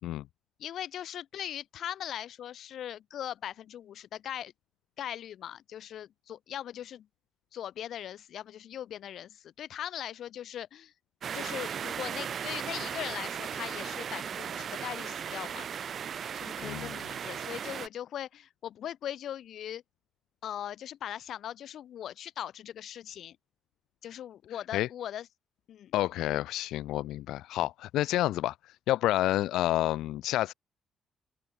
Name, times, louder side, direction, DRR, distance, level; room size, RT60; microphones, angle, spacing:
voice 1, 0.6-4.5 5.0-7.1 7.5-10.9 11.3-15.7 16.3-19.8 20.4-23.4 24.0-25.3 25.7-25.9, left 10 dB, 70° left, 1.9 m, -40 dB
sound 1, 11.2-17.9, right 8 dB, 55° right, 0.8 m, -37 dB
voice 2, 25.9-28.5 28.9-30.5, left 15 dB, 90° left, 0.3 m, -29 dB
cardioid pair, 90°, 0 cm